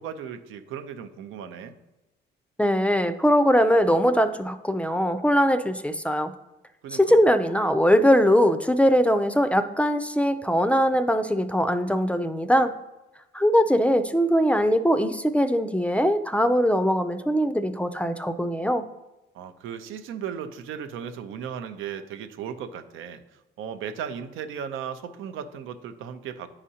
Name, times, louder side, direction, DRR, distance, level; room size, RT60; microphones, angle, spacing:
voice 1, 0.0-1.8 6.8-7.2 19.3-26.5, right 8 dB, 90° right, 9 dB, 0.6 m, -36 dB
voice 2, 2.6-6.3 6.9-12.7 13.3-18.9, equal, 5° left, 11 dB, 0.4 m, -21 dB
9.8 x 5.0 x 2.8 m, 1.0 s
cardioid pair, 90°, 20 cm